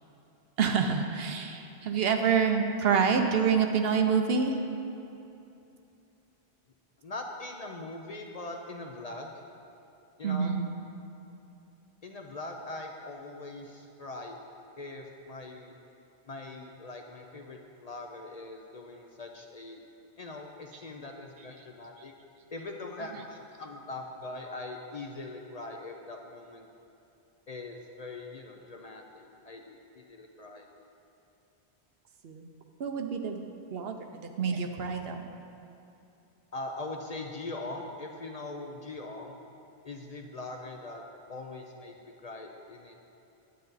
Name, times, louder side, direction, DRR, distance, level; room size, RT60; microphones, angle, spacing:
voice 1, 0.6-4.6 10.2-10.7 32.2-32.5 32.8-33.4 33.7-35.3, right 6 dB, 70° right, 5 dB, 0.9 m, -27 dB
voice 2, 7.0-9.4 10.2-10.6 12.0-14.4 14.8-15.7 16.3-19.8 20.2-22.1 22.5-26.7 27.5-30.7 36.5-39.4 39.8-42.0 42.2-42.9, left 2 dB, 45° left, 2 dB, 0.6 m, -41 dB
9.4 x 8.8 x 4.0 m, 2.7 s
omnidirectional pair, 1.1 m